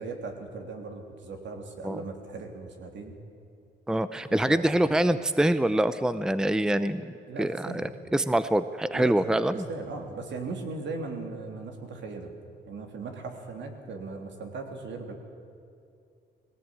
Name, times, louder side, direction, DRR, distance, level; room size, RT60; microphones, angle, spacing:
voice 1, 0.0-3.1 4.3-4.7 7.3-7.9 8.9-9.1 9.5-12.3 12.7-15.2, right 3 dB, 65° right, 4 dB, 3.3 m, -38 dB
voice 2, 3.9-7.1 7.4-9.7, right 1 dB, 5° right, 13 dB, 0.7 m, -25 dB
20.0 x 17.5 x 8.9 m, 2.6 s
cardioid pair, 90°, 20 cm